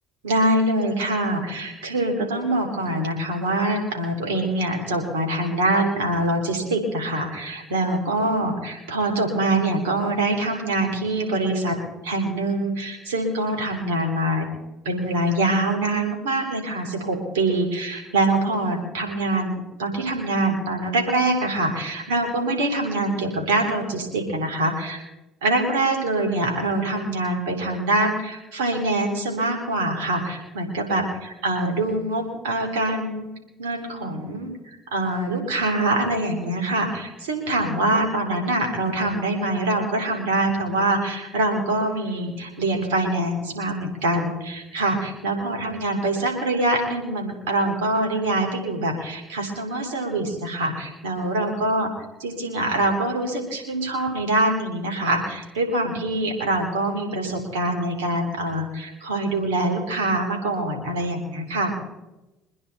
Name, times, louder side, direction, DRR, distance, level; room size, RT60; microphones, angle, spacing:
voice 1, 0.2-11.7 12.0-14.5 14.9-25.0 25.4-33.3 33.6-51.9 52.2-61.7, right 2 dB, 85° right, 3 dB, 3.4 m, -24 dB
24.0 x 10.0 x 4.2 m, 0.98 s
hypercardioid pair, 60°, 0 cm